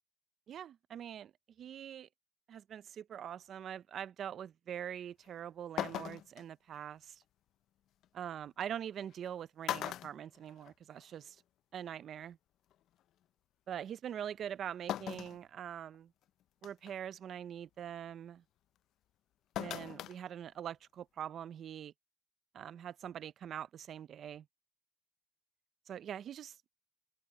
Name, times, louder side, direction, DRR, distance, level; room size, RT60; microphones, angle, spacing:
voice 1, 0.5-1.3 1.6-2.1 2.5-7.2 8.1-11.4 11.7-12.4 13.7-16.1 16.6-18.4 19.6-21.9 22.5-24.5 25.9-26.6, right 9 dB, 65° right, 0.5 m, -43 dB
sound 1, 5.2-5.3 5.8-6.4 8.0-8.1 9.1-9.3 9.6-11.0 11.4-11.5 12.7-12.8 14.9-15.4 15.9-16.0 16.6-16.9 19.6-20.2 20.5-20.6, left 12 dB, 80° left, 0.4 m, -39 dB
cardioid pair, 90°, 0 cm